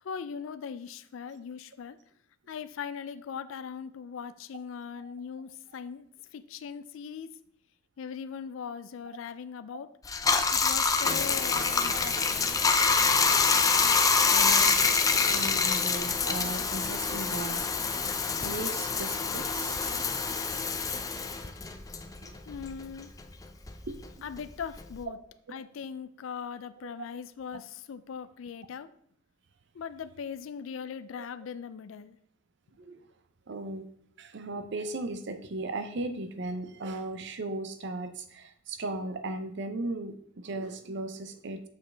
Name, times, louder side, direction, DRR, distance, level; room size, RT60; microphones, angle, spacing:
voice 1, 0.0-2.0 2.5-6.1 6.3-7.3 8.0-9.9 10.5-12.6 22.5-23.1 24.2-25.2 25.5-28.9 29.8-32.2, left 6 dB, 75° left, 12 dB, 0.4 m, -40 dB
Bathtub (filling or washing), 10.0-22.9 23.2-25.0, left 5 dB, 20° left, 0.5 m, -26 dB
voice 2, 14.2-17.6 18.4-20.0 22.2-22.3 23.9-24.3 26.8-26.9 32.9-33.0 33.5-33.8 34.2-41.7, right 2 dB, 60° right, 9 dB, 0.6 m, -37 dB
7.0 x 6.4 x 3.3 m, 0.66 s
head